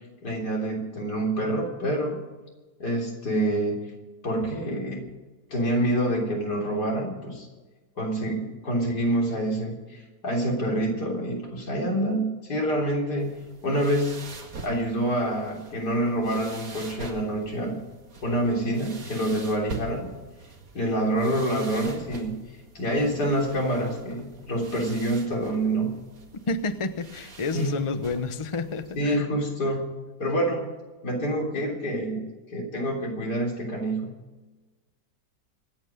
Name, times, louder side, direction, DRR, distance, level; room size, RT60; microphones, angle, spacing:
voice 1, 0.2-2.2 2.8-3.8 4.2-5.1 5.5-7.5 8.0-13.3 13.6-14.2 14.6-17.8 18.2-20.1 20.7-22.4 22.7-25.9 27.5-27.9 29.0-29.8 30.2-30.7 31.0-34.1, right 1 dB, 70° left, -1 dB, 4.1 m, -27 dB
sound 1, 13.2-29.0, right 3 dB, 55° right, 2.3 m, -44 dB
voice 2, 26.5-29.3, left 3 dB, 30° left, 10 dB, 0.5 m, -30 dB
25.5 x 9.0 x 5.2 m, 1.2 s
omnidirectional pair, 1.8 m